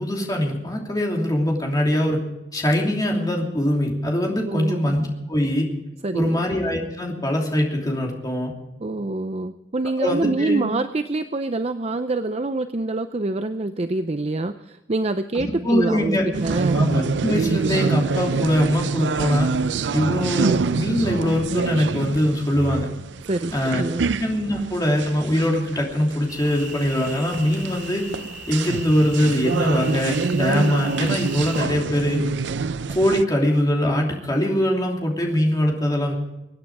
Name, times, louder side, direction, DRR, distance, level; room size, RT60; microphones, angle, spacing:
voice 1, 0.0-2.2 2.5-5.7 6.1-8.5 10.0-10.6 15.3-16.3 16.7-19.6 19.9-22.9 23.5-23.8 24.2-28.0 28.5-32.2 32.9-36.1, left 1 dB, 20° left, 0 dB, 2.9 m, -22 dB
voice 2, 4.4-4.9 6.0-6.4 8.8-16.8 23.3-24.1, right 2 dB, 35° right, 9 dB, 0.6 m, -26 dB
sound 1, 16.3-33.2, right 4 dB, 85° right, 0.5 m, -26 dB
sound 2, 26.3-31.6, equal, ahead, 2.2 m, -39 dB
24.5 x 9.5 x 4.9 m, 0.97 s
head